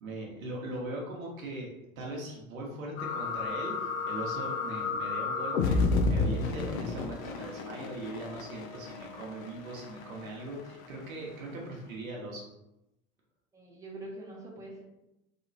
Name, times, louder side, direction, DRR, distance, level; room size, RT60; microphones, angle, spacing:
voice 1, 0.0-1.7 2.0-5.8 6.1-12.4, right 1 dB, 75° right, -2 dB, 1.1 m, -40 dB
sound 1, 3.0-11.3, left 4 dB, 75° left, 0.6 m, -32 dB
voice 2, 13.5-14.8, right 1 dB, 5° right, -3 dB, 0.8 m, -44 dB
3.3 x 2.9 x 2.6 m, 0.91 s
figure-of-eight pair, 75°, 42 cm